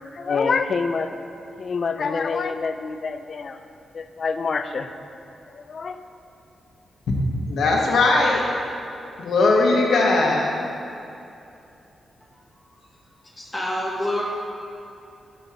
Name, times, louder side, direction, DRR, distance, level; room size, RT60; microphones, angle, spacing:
voice 1, 0.1-1.2 1.6-3.6 3.9-4.9 5.5-6.0, left 5 dB, 45° left, 9 dB, 0.3 m, -26 dB
voice 2, 7.5-8.4 9.2-10.5, left 3 dB, 80° left, -1 dB, 1.0 m, -19 dB
voice 3, 13.4-14.2, left 1 dB, 10° left, -4 dB, 1.2 m, -26 dB
5.8 x 5.2 x 4.8 m, 2.7 s
wide cardioid pair, 145°, 0 cm